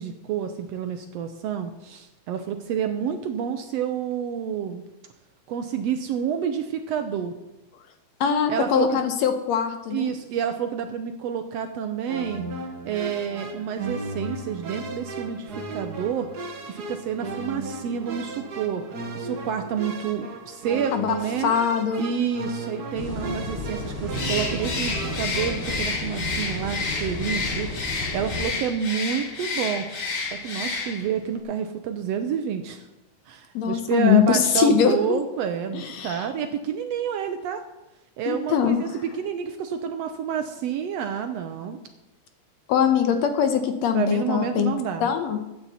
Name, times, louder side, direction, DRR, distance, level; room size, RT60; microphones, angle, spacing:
voice 1, 0.0-4.8 5.5-7.3 8.5-9.0 9.9-12.4 12.8-18.8 19.1-21.5 22.0-29.9 30.3-32.9 33.3-37.6 38.2-41.8 43.9-45.1, right 8 dB, 75° right, 7 dB, 1.6 m, -29 dB
voice 2, 8.2-10.1 20.9-22.1 33.6-35.2 35.7-36.3 38.3-38.8 42.7-44.8 45.0-45.4, left 7 dB, 70° left, 7 dB, 2.0 m, -22 dB
sound 1, 12.1-25.8, right 2 dB, 45° right, 1.4 m, -35 dB
sound 2, 22.9-28.5, left 1 dB, 35° left, 5.8 m, -33 dB
Bird, 24.1-31.2, left 4 dB, 50° left, 0.9 m, -30 dB
15.0 x 9.2 x 4.2 m, 0.99 s
omnidirectional pair, 3.4 m